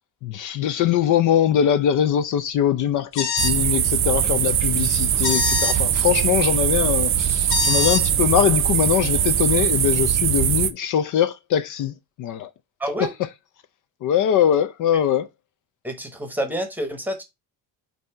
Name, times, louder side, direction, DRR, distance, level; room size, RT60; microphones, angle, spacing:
voice 1, 0.2-11.9 12.2-12.5 13.0-13.1 14.0-15.3, left 10 dB, 55° left, 0.5 m, -22 dB
sound 1, 3.1-3.6 5.2-5.8 7.5-8.0, left 8 dB, 85° left, 1.6 m, -24 dB
sound 2, 3.4-10.7, right 10 dB, 35° right, 0.5 m, -21 dB
voice 2, 12.8-13.1 14.9-15.0 15.8-17.2, right 1 dB, 5° right, 1.0 m, -28 dB
8.2 x 2.8 x 4.3 m
cardioid pair, 170°, 38 cm